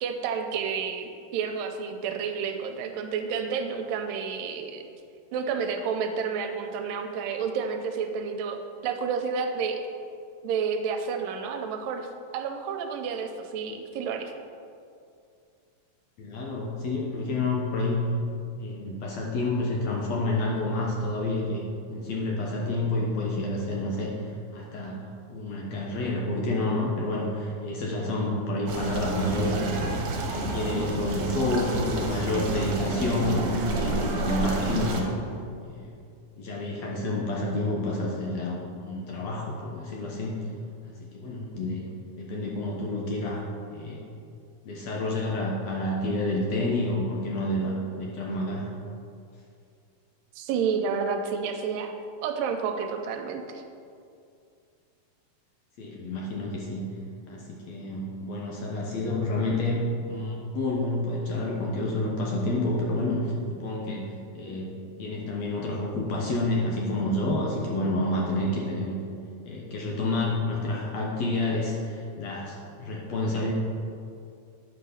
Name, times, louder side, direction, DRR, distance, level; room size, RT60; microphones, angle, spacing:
voice 1, 0.0-4.9 5.3-9.8 10.4-12.1 12.3-14.3 50.4-51.9 52.2-53.6, right 6 dB, 85° right, 5 dB, 2.3 m, -30 dB
voice 2, 16.2-18.1 18.6-21.6 21.9-24.1 24.5-25.0 25.3-30.0 30.3-35.2 35.6-35.9 36.4-40.4 41.1-41.8 42.2-43.4 43.7-44.1 44.7-48.7 55.8-56.9 57.3-64.0 64.3-64.7 65.0-69.0 69.4-73.5, left 2 dB, 70° left, -2 dB, 1.8 m, -29 dB
sound 1, 28.7-35.0, right 2 dB, 60° right, 2.1 m, -29 dB
9.6 x 4.7 x 6.5 m, 2.4 s
omnidirectional pair, 4.0 m